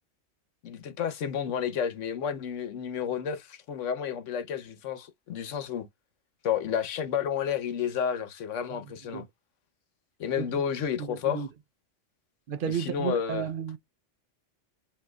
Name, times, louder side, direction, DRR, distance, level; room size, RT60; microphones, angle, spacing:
voice 1, 0.6-5.9 6.4-9.2 10.2-11.4 12.6-13.5, left 8 dB, 80° left, 1.1 m, -31 dB
voice 2, 11.0-11.5 12.5-13.8, right 8 dB, 55° right, 0.6 m, -33 dB
7.4 x 2.7 x 2.2 m
omnidirectional pair, 1.2 m